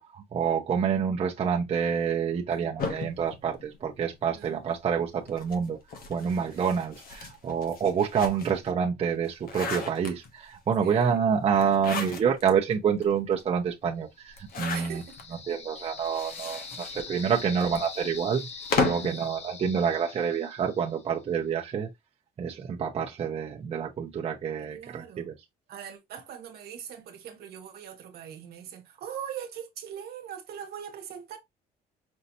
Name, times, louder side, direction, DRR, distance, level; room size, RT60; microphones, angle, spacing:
voice 1, 0.0-5.8 6.1-15.0 15.5-18.4 18.8-21.9 22.4-25.3, right 7 dB, 35° right, 0.8 m, -27 dB
sound 1, 2.8-4.4 5.2-8.7 9.1-10.5 11.5-12.5 13.0-13.1 13.3-13.4 14.3-15.2 16.0-19.2, left 4 dB, 60° left, 1.1 m, -35 dB
voice 2, 10.8-11.2 14.7-15.6 17.3-17.6 18.9-19.3 24.6-25.3 25.7-31.4, right 9 dB, 70° right, 1.3 m, -42 dB
sound 2, 14.3-21.2, left 5 dB, 40° left, 1.0 m, -43 dB
5.4 x 2.8 x 2.7 m
cardioid pair, 110°, 17 cm